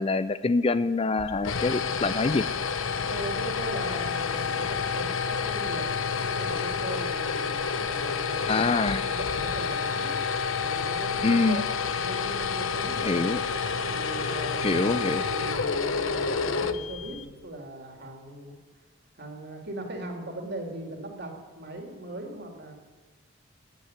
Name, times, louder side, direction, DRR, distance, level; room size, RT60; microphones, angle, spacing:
voice 1, 0.0-2.5 8.5-9.1 11.2-11.6 13.0-13.4 14.6-15.2, left 3 dB, 30° left, 14 dB, 0.4 m, -25 dB
sound 1, 1.2-17.4, left 5 dB, 85° left, 0.9 m, -29 dB
voice 2, 3.1-5.9 6.3-10.1 10.6-11.6 11.9-13.2 13.9-18.6 19.2-22.7, right 1 dB, 55° right, 2 dB, 3.2 m, -39 dB
15.5 x 9.3 x 9.4 m, 1.3 s
head